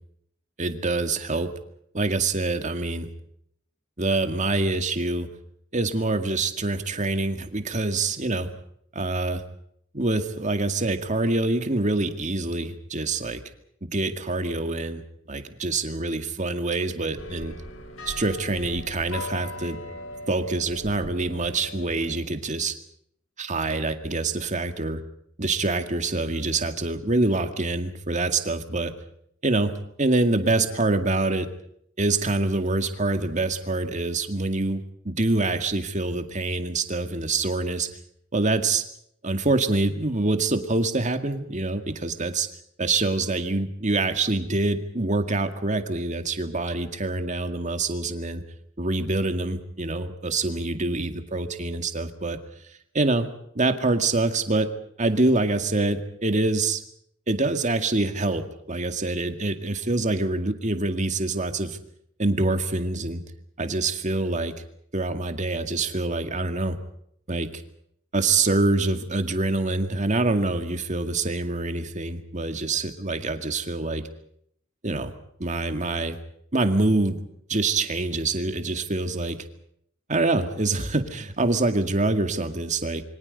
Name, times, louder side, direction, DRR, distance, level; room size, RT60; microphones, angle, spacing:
voice 1, 0.6-1.5 1.9-3.1 4.0-5.3 5.7-8.5 9.0-9.4 9.9-13.4 13.8-15.0 15.3-17.5 18.1-19.8 20.3-22.8 23.4-25.0 25.4-28.9 29.4-31.5 32.0-37.9 38.3-38.8 39.2-42.5 42.8-48.4 48.8-52.4 52.9-53.3 53.6-54.7 55.0-56.8 57.3-61.8 62.2-63.2 63.6-64.5 64.9-66.8 67.3-67.6 68.1-74.0 74.8-75.1 75.4-76.2 76.5-77.2 77.5-79.4 80.1-83.0, right 2 dB, 35° right, 8 dB, 2.1 m, -25 dB
sound 1, 17.2-22.2, left 1 dB, 80° left, 3.8 m, -39 dB
27.5 x 24.0 x 5.3 m, 0.69 s
head